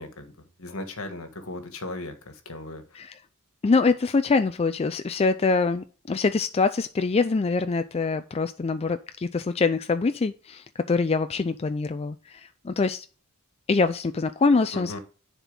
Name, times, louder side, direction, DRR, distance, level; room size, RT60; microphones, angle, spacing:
voice 1, 0.0-3.0 14.7-15.0, left 2 dB, 70° left, 1.6 m, -37 dB
voice 2, 3.6-13.1 13.7-15.0, left 4 dB, 30° left, 0.4 m, -24 dB
10.5 x 4.4 x 3.9 m
head